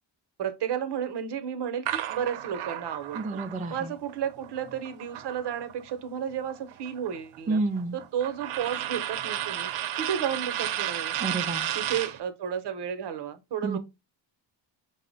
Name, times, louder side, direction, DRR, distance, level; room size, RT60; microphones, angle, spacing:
voice 1, 0.4-3.4 3.7-7.6 7.9-9.7 10.0-11.2 11.7-13.8, right 8 dB, 60° right, 0.8 m, -32 dB
sound 1, 1.8-5.9 6.2-12.2, right 11 dB, 90° right, 0.6 m, -33 dB
voice 2, 3.1-3.9 7.5-8.0 11.2-11.7 13.6-13.8, right 3 dB, 20° right, 0.3 m, -29 dB
5.4 x 2.1 x 3.8 m
cardioid pair, 140°, 47 cm